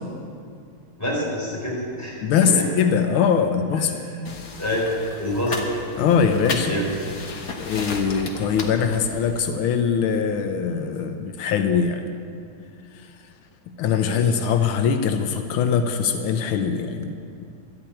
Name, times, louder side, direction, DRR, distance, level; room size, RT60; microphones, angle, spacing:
voice 1, 1.0-2.7 4.0-4.2 4.6-4.8 5.2-5.6 6.6-6.9 14.0-14.2, left 1 dB, 5° left, -5 dB, 4.5 m, -27 dB
voice 2, 2.2-4.0 6.0-6.8 7.6-12.0 13.8-17.4, left 7 dB, 85° left, 7 dB, 1.6 m, -22 dB
sound 1, 4.3-9.4, left 3 dB, 50° left, 1.4 m, -34 dB
13.0 x 9.0 x 8.7 m, 2.3 s
omnidirectional pair, 2.3 m